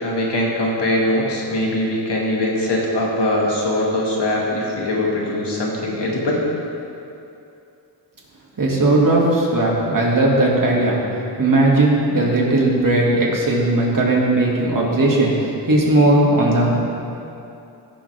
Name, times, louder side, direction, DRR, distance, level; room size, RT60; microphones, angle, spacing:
voice 1, 0.0-6.4, left 1 dB, 70° left, -3 dB, 2.0 m, -21 dB
voice 2, 8.6-11.0 11.4-16.9, right 2 dB, 50° right, -3 dB, 2.2 m, -17 dB
15.5 x 6.9 x 3.5 m, 2.7 s
wide cardioid pair, 80°, 42 cm